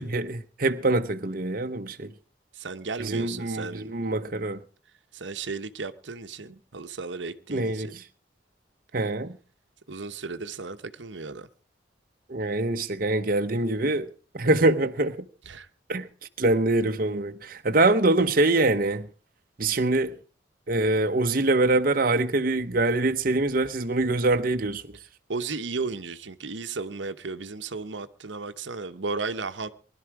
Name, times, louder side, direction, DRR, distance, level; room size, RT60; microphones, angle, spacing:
voice 1, 0.0-2.1 3.0-4.6 7.5-8.0 8.9-9.4 12.3-15.2 15.9-16.1 16.4-19.1 19.6-20.2 20.7-25.0, right 2 dB, 50° right, 0.9 m, -24 dB
voice 2, 2.5-3.9 5.1-8.0 9.9-11.5 15.5-15.7 25.3-29.7, right 4 dB, 85° right, 1.0 m, -34 dB
20.5 x 12.0 x 4.8 m
head